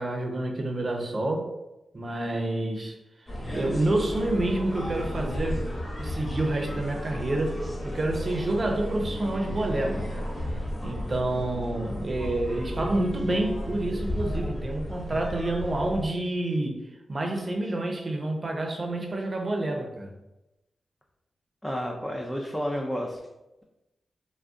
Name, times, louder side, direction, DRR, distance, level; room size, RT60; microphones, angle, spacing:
voice 1, 0.0-1.5 1.9-2.9 3.5-5.7 6.0-10.3 10.8-16.8 17.1-20.1, right 1 dB, 45° right, 2 dB, 0.6 m, -28 dB
sound 1, 3.3-16.1, left 1 dB, 45° left, 1.1 m, -33 dB
voice 2, 21.6-23.2, equal, 10° left, -1 dB, 0.4 m, -31 dB
2.3 x 2.2 x 3.6 m, 0.97 s
cardioid pair, 45°, 0 cm